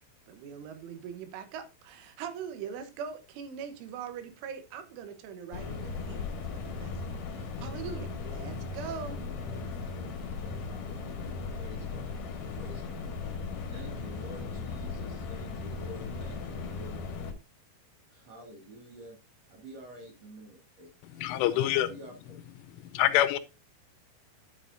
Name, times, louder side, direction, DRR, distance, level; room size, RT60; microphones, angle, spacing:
voice 1, 0.3-9.2, right 7 dB, 80° right, 3.5 m, -42 dB
sound 1, 5.5-17.3, left 4 dB, 60° left, 2.4 m, -37 dB
voice 2, 8.7-12.2 12.5-13.1 13.7-17.1 18.1-19.2 19.5-22.4, right 1 dB, 45° right, 2.4 m, -50 dB
voice 3, 21.2-21.9 22.8-23.4, left 13 dB, 85° left, 3.1 m, -25 dB
11.5 x 7.3 x 2.6 m
omnidirectional pair, 5.7 m